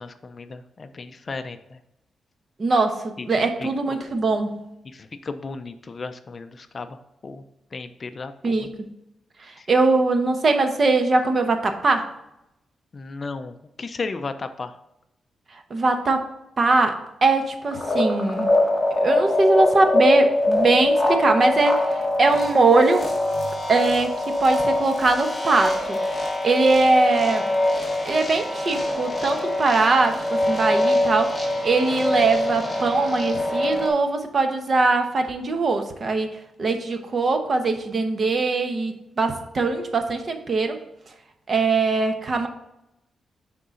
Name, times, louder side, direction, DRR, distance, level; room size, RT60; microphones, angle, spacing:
voice 1, 0.0-1.8 3.2-3.3 3.6-4.0 4.8-7.0 7.2-7.4 7.7-8.7 9.6-9.7 12.9-14.8, left 4 dB, 35° left, 9 dB, 0.4 m, -35 dB
voice 2, 2.6-4.6 8.4-8.7 9.5-12.1 15.7-16.3 16.6-18.5 19.0-23.1 23.7-26.0 26.4-27.5 28.0-40.8 41.5-42.5, right 3 dB, 40° right, 6 dB, 0.9 m, -21 dB
sound 1, 17.7-33.9, left 1 dB, 20° left, 1.5 m, -23 dB
9.7 x 3.8 x 3.8 m, 0.85 s
wide cardioid pair, 130°, 0 cm